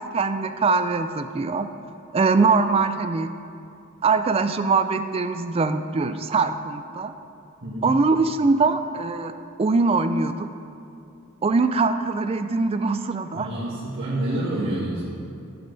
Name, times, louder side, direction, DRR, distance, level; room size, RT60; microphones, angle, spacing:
voice 1, 0.0-1.7 2.1-3.3 4.0-7.1 7.8-9.3 9.6-10.5 11.4-13.5, right 4 dB, 25° right, 9 dB, 0.3 m, -22 dB
voice 2, 7.6-7.9 13.4-15.1, right 1 dB, 55° right, -11 dB, 1.8 m, -28 dB
11.5 x 7.4 x 4.0 m, 2.6 s
head